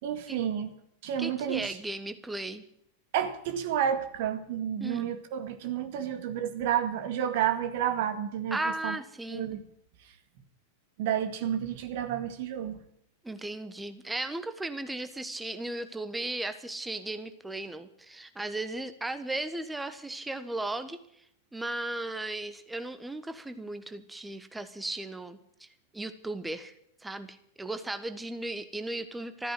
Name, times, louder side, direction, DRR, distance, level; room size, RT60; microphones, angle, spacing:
voice 1, 0.0-0.7 1.0-1.8 3.1-8.6 8.8-9.0 9.3-9.6 11.0-12.8, right 9 dB, 50° right, 8 dB, 2.0 m, -30 dB
voice 2, 1.2-2.6 4.8-5.0 8.5-9.6 13.2-21.0 21.5-25.7 25.9-26.7 27.0-29.5, right 2 dB, 5° right, 10 dB, 1.3 m, -36 dB
14.0 x 10.0 x 9.3 m, 0.70 s
figure-of-eight pair, 90°, 0 cm